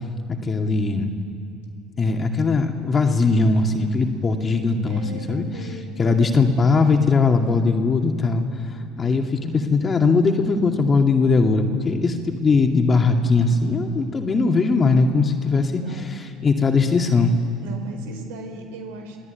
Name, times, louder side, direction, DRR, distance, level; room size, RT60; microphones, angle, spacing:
voice 1, 0.4-1.1 2.0-5.4 6.0-17.3, left 4 dB, 30° left, 3 dB, 2.4 m, -20 dB
voice 2, 4.9-6.6 15.8-16.2 17.6-19.2, right 3 dB, 75° right, 4 dB, 4.4 m, -38 dB
26.0 x 18.0 x 9.4 m, 2.6 s
hypercardioid pair, 70°, 0 cm